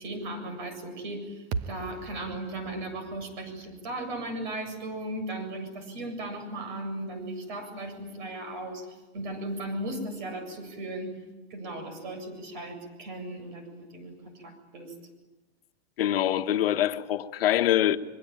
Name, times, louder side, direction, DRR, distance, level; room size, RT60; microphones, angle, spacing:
voice 1, 0.0-11.2 11.5-14.9, right 1 dB, 50° right, 7.7 m, -37 dB
sound 1, 1.5-5.8, right 5 dB, 30° right, 1.1 m, -40 dB
voice 2, 16.0-18.0, left 12 dB, 65° left, 1.5 m, -24 dB
26.5 x 23.5 x 8.9 m
supercardioid pair, 175°, 31 cm